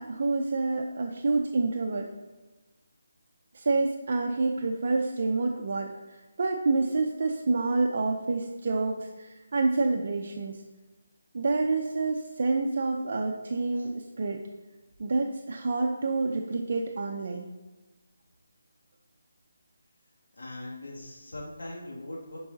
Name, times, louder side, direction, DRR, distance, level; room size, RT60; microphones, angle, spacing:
voice 1, 0.0-2.1 3.5-10.6 11.3-14.4 15.0-17.5, right 3 dB, 55° right, 2 dB, 0.6 m, -28 dB
voice 2, 20.4-22.4, left 1 dB, 80° left, -5 dB, 2.3 m, -40 dB
10.0 x 4.7 x 2.8 m, 1.2 s
figure-of-eight pair, 165°, 0 cm